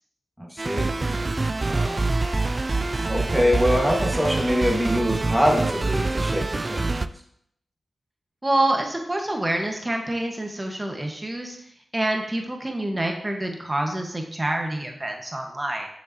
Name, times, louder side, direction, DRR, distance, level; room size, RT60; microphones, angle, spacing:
voice 1, 0.4-1.0 1.6-2.1 3.1-7.0, equal, 5° right, 0 dB, 1.8 m, -24 dB
sound 1, 0.6-7.1, right 3 dB, 40° right, 0.3 m, -25 dB
voice 2, 8.4-11.6 11.9-15.9, right 1 dB, 25° right, 2 dB, 1.5 m, -27 dB
6.7 x 6.6 x 3.0 m, 0.70 s
cardioid pair, 40°, 0 cm